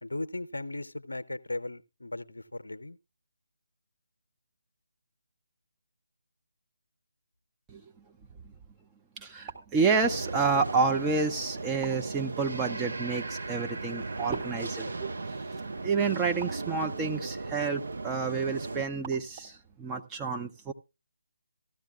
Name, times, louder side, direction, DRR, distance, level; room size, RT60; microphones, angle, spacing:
voice 1, 0.0-3.0, left 2 dB, 75° left, 0.7 m, -37 dB
voice 2, 9.2-15.1 15.8-20.7, right 4 dB, 10° right, 0.6 m, -29 dB
sound 1, 9.2-19.7, right 7 dB, 30° right, 2.5 m, -52 dB
sound 2, 10.0-18.9, right 3 dB, 60° right, 0.8 m, -37 dB
15.5 x 13.0 x 2.4 m
figure-of-eight pair, 150°, 0 cm